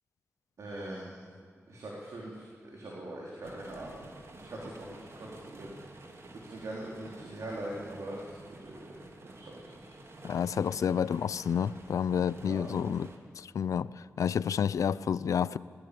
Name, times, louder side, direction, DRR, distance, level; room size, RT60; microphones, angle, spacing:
voice 1, 0.6-1.2 1.7-4.0 4.3-5.8 6.0-9.9 12.4-12.7, right 1 dB, 75° right, -3 dB, 3.9 m, -42 dB
sound 1, 3.4-13.2, right 2 dB, 55° right, 2.8 m, -51 dB
voice 2, 10.2-13.1 13.4-13.9 14.2-15.6, left 7 dB, 85° left, 18 dB, 0.5 m, -29 dB
20.0 x 18.0 x 8.6 m, 2.2 s
cardioid pair, 65°, 5 cm